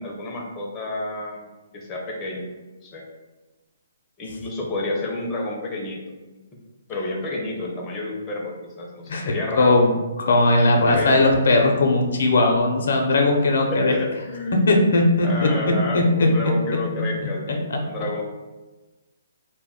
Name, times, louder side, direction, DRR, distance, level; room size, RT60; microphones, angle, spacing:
voice 1, 0.0-2.5 2.8-3.0 4.2-6.0 6.9-9.8 10.8-11.3 13.7-14.6 15.2-18.2, left 2 dB, 20° left, -2 dB, 0.5 m, -30 dB
voice 2, 9.1-9.9 10.2-13.9 14.7-15.5 15.9-16.3 17.7-17.8, left 2 dB, 75° left, 2 dB, 0.5 m, -18 dB
2.2 x 2.1 x 3.6 m, 1.2 s
hypercardioid pair, 155°, 0 cm